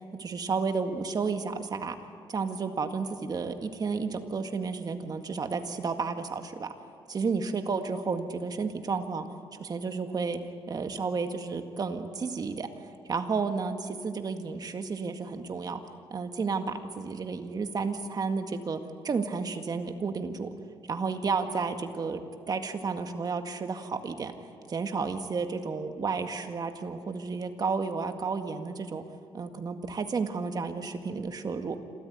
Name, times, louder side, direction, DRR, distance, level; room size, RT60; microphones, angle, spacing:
voice 1, 0.2-2.0 2.3-6.7 7.1-9.3 9.6-10.4 10.7-12.7 13.1-15.8 16.1-20.5 20.9-22.2 22.5-24.3 24.7-29.0 29.3-31.8, right 4 dB, 45° right, 7 dB, 1.9 m, -32 dB
28.0 x 14.0 x 9.3 m, 2.3 s
cardioid pair, 90°, 9 cm